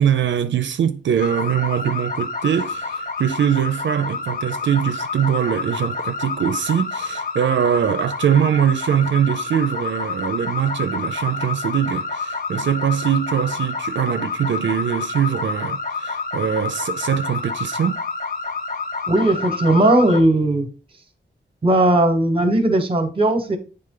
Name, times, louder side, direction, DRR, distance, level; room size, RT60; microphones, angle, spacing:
voice 1, 0.0-18.0, right 9 dB, 80° right, 0.4 m, -22 dB
sound 1, 1.2-20.2, left 4 dB, 45° left, 1.0 m, -28 dB
voice 2, 19.1-20.7 21.6-23.6, right 1 dB, 30° right, 1.0 m, -17 dB
8.6 x 3.4 x 3.7 m
wide cardioid pair, 155°, 19 cm